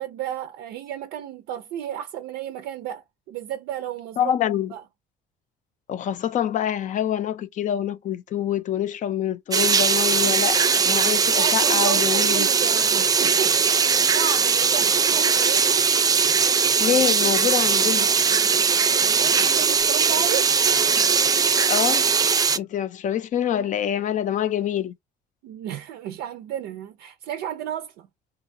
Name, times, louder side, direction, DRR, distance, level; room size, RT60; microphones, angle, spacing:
voice 1, 0.0-4.3 4.7-4.8 11.1-13.9 14.1-15.7 19.0-20.6 25.4-28.1, right 11 dB, 90° right, 0.5 m, -33 dB
voice 2, 4.2-4.7 5.9-12.5 16.8-18.1 21.7-22.1 22.5-24.9, left 10 dB, 50° left, 0.4 m, -26 dB
sound 1, 9.5-22.6, right 5 dB, 20° right, 0.3 m, -20 dB
2.9 x 2.3 x 2.6 m
cardioid pair, 110°, 17 cm